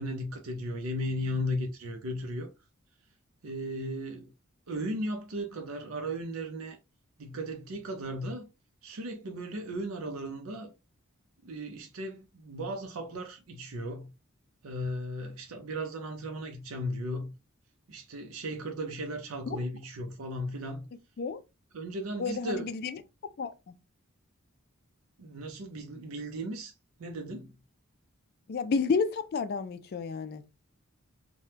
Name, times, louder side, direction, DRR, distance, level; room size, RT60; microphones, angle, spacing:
voice 1, 0.0-2.5 3.4-4.3 4.7-6.8 7.2-8.5 8.8-10.7 11.4-14.1 14.6-17.3 17.9-20.9 21.7-22.7 25.2-26.7 27.0-27.5, equal, 85° right, 0.6 m, -36 dB
voice 2, 22.2-23.0 23.4-23.8 28.5-30.5, left 5 dB, 50° left, 0.3 m, -31 dB
2.8 x 2.2 x 3.2 m
head